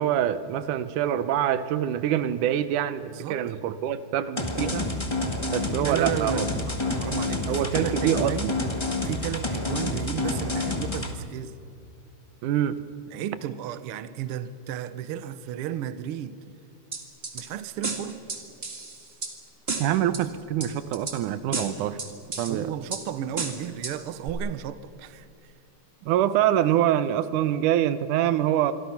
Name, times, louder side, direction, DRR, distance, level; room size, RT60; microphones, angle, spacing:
voice 1, 0.0-5.0 5.5-6.5 6.9-7.0 7.5-8.5 12.4-12.8 19.8-22.0 22.4-22.7 26.0-28.7, right 11 dB, 90° right, 13 dB, 2.4 m, -25 dB
voice 2, 3.0-3.4 5.8-6.6 6.9-8.5 9.0-11.5 13.1-16.4 17.3-18.2 22.4-25.5, right 10 dB, 65° right, 13 dB, 1.5 m, -33 dB
sound 1, 4.4-11.1, left 2 dB, 20° left, 0.7 m, -29 dB
sound 2, 16.9-17.4 17.8-19.3 19.7-20.2 20.6-21.2 21.5-22.5 22.9-23.0 23.4-23.9 24.3-24.4, right 3 dB, 25° right, 1.8 m, -32 dB
27.0 x 23.0 x 5.9 m, 2.7 s
omnidirectional pair, 3.5 m